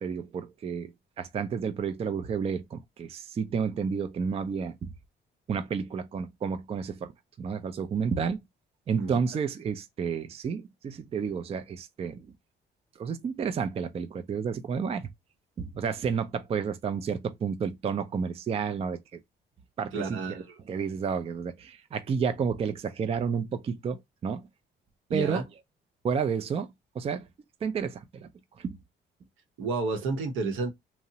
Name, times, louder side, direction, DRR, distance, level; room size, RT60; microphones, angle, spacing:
voice 1, 0.0-4.9 5.5-7.1 7.4-8.4 8.9-12.3 13.0-15.1 15.6-19.2 19.8-20.4 20.7-24.4 25.1-25.4 26.0-26.7 27.0-27.3 27.6-28.3 28.6-28.8, right 6 dB, 30° right, 0.3 m, -31 dB
voice 2, 19.9-20.6 25.1-25.4 29.6-30.7, right 3 dB, 85° right, 0.8 m, -31 dB
2.8 x 2.0 x 2.6 m
cardioid pair, 90°, 20 cm